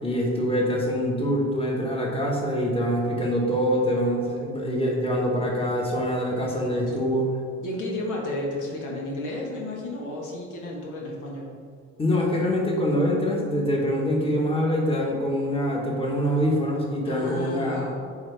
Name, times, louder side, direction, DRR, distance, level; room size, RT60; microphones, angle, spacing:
voice 1, 0.0-7.3 12.0-17.8, equal, 20° left, -2 dB, 1.5 m, -24 dB
voice 2, 7.6-11.5 17.0-17.9, left 1 dB, 90° left, -2 dB, 1.6 m, -32 dB
8.5 x 4.7 x 3.5 m, 2.3 s
cardioid pair, 90°, 30 cm